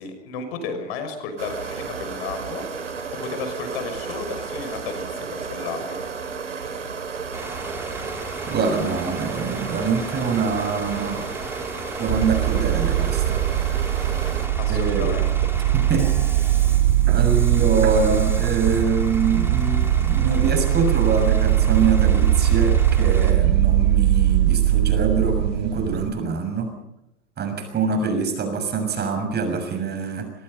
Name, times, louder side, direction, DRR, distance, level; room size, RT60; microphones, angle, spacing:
voice 1, 0.0-2.7 3.2-6.0 14.1-15.3, left 4 dB, 60° left, 7 dB, 6.1 m, -33 dB
sound 1, 1.4-14.5, right 5 dB, 85° right, 3.4 m, -33 dB
Bus / Idling, 7.3-23.3, right 1 dB, 5° right, 5.2 m, -36 dB
voice 2, 8.5-11.3 12.0-13.5 14.7-15.1 15.7-16.5 17.1-26.7 27.4-30.3, right 5 dB, 30° right, 6 dB, 6.5 m, -24 dB
sound 2, 12.1-26.1, right 12 dB, 55° right, 2.2 m, -20 dB
27.5 x 22.0 x 5.4 m, 0.86 s
hypercardioid pair, 95°, 35 cm